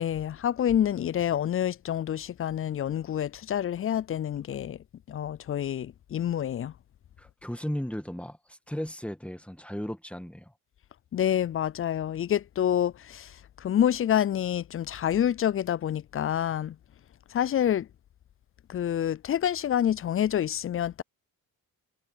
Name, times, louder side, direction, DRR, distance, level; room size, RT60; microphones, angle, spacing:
voice 1, 0.0-4.8 5.1-6.7 11.1-16.8 17.3-17.9 18.7-21.0, left 10 dB, 35° left, 0.4 m, -27 dB
voice 2, 7.2-10.5, equal, 5° left, 1.8 m, -35 dB
supercardioid pair, 60°, 38 cm